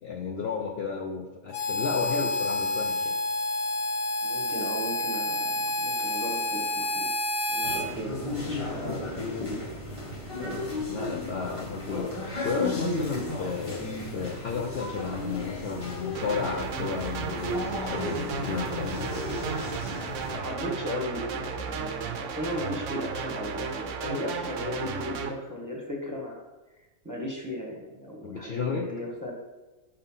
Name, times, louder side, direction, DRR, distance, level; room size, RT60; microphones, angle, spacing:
voice 1, 0.0-3.1 10.9-19.1 28.2-28.8, left 5 dB, 60° left, 2 dB, 0.7 m, -33 dB
Harmonica, 1.5-7.9, left 2 dB, 75° left, 1.2 m, -29 dB
voice 2, 4.2-7.1 7.5-9.8 20.2-26.4 27.0-29.3, left 1 dB, 15° right, -2 dB, 1.0 m, -36 dB
sound 1, 7.6-20.4, left 1 dB, 20° left, 1.5 m, -34 dB
sound 2, 16.1-25.3, right 5 dB, 65° right, 0.9 m, -34 dB
5.0 x 4.5 x 5.6 m, 1.2 s
omnidirectional pair, 1.5 m